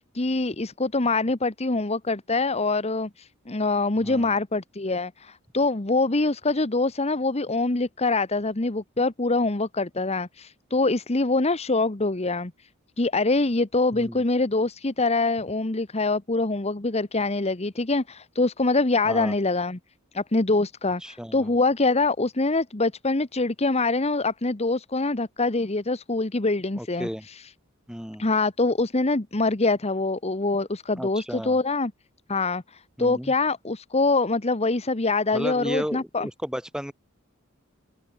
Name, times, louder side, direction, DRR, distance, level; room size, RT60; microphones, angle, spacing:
voice 1, 0.0-12.5 13.0-19.8 20.1-27.1 28.2-31.9 32.3-32.6 33.0-36.3, left 3 dB, 30° left, 1.2 m, -24 dB
voice 2, 4.0-4.4 13.9-14.2 19.0-19.3 21.0-21.5 26.8-27.3 27.9-28.2 31.0-31.6 33.0-33.3 35.3-36.9, equal, 5° right, 3.2 m, -34 dB
head